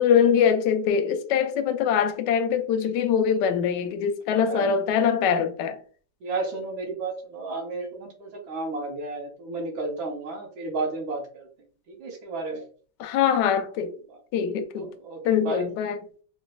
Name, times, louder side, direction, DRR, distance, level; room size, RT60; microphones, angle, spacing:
voice 1, 0.0-5.8 13.0-13.9 14.3-14.9 15.2-16.0, left 7 dB, 75° left, 1.0 m, -23 dB
voice 2, 4.3-4.7 6.2-11.5 11.9-12.6 14.1-14.2 14.8-15.7, right 3 dB, 80° right, 1.6 m, -33 dB
3.3 x 3.0 x 2.3 m
omnidirectional pair, 2.2 m